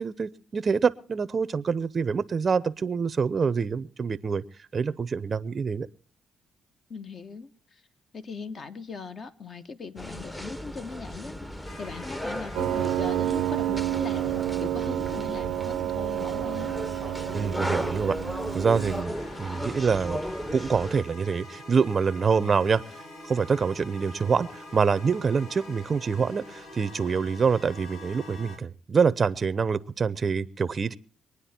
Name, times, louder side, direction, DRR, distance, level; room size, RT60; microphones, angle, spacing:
voice 1, 0.0-4.4 4.7-5.9 17.3-20.2 20.5-22.8 23.2-31.0, right 5 dB, 40° right, 15 dB, 0.6 m, -26 dB
voice 2, 6.9-7.8 8.1-16.8, left 4 dB, 45° left, 9 dB, 1.2 m, -39 dB
sound 1, 10.0-21.0, equal, 5° left, 0.8 m, -36 dB
sound 2, 11.6-14.4 18.7-28.6, left 1 dB, 80° left, 2.4 m, -45 dB
Piano, 12.5-19.0, right 13 dB, 85° right, 0.6 m, -29 dB
23.5 x 9.7 x 4.3 m, 0.41 s
cardioid pair, 90°, 0 cm